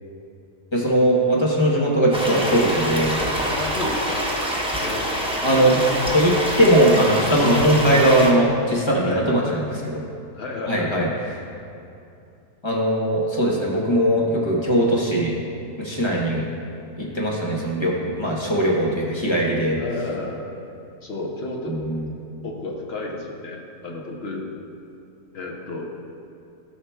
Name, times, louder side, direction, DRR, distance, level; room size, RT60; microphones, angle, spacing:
voice 1, 0.7-3.1 5.4-9.7 10.7-11.1 12.6-15.3 15.8-16.5 17.0-19.8 21.7-22.0, right 1 dB, 20° left, -4 dB, 0.9 m, -20 dB
sound 1, 2.1-8.3, equal, 5° right, 0.5 m, -25 dB
voice 2, 3.6-4.3 4.8-5.3 9.1-9.8 10.3-11.1 19.8-20.5 21.0-22.0 22.4-24.5 25.3-25.9, left 2 dB, 50° left, 0 dB, 0.8 m, -32 dB
13.0 x 5.8 x 2.3 m, 2.7 s
omnidirectional pair, 1.7 m